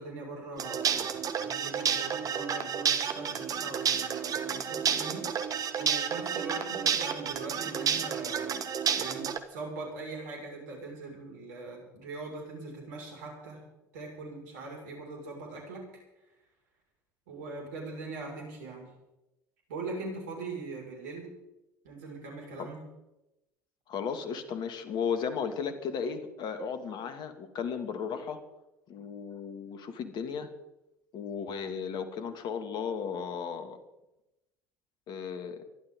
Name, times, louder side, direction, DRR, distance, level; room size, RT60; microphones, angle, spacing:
voice 1, 0.0-8.6 9.0-13.6 13.9-16.0 17.3-18.9 19.7-21.3 21.8-22.8, right 3 dB, 70° right, 0 dB, 5.7 m, -41 dB
sound 1, 0.6-9.4, right 7 dB, 40° right, 1.6 m, -30 dB
voice 2, 23.9-28.4 28.9-30.5 31.1-33.8 35.1-35.7, left 6 dB, 50° left, 8 dB, 2.4 m, -35 dB
26.5 x 12.0 x 3.9 m, 0.95 s
figure-of-eight pair, 65°, 10 cm